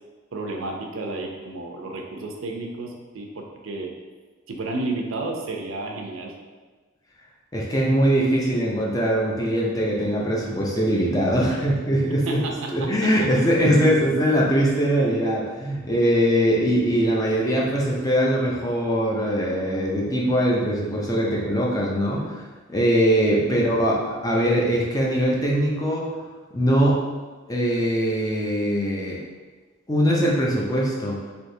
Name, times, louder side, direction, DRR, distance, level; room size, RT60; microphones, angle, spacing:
voice 1, 0.3-3.9 4.5-6.3 12.3-13.1 21.3-21.4 23.5-23.7, right 2 dB, 85° right, 1 dB, 0.5 m, -32 dB
voice 2, 7.5-12.4 12.7-26.1 26.5-27.0 27.5-29.2 29.9-31.2, equal, 20° left, -3 dB, 0.5 m, -22 dB
3.5 x 2.7 x 2.7 m, 1.3 s
head